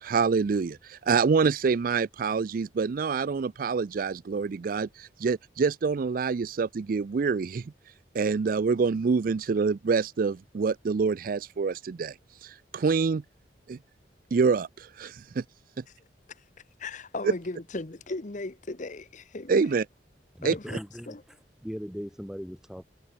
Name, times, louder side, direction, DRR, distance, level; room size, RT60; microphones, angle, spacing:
voice 1, 0.0-7.6 8.1-12.1 12.4-13.2 13.7-13.8 14.3-15.4 19.5-19.8 20.4-20.5, right 5 dB, 55° right, 0.4 m, -26 dB
voice 2, 16.8-19.7 20.4-20.8 21.1-21.2, left 2 dB, 45° left, 1.1 m, -37 dB
voice 3, 20.4-21.2 21.6-22.8, equal, 5° right, 2.6 m, -38 dB
head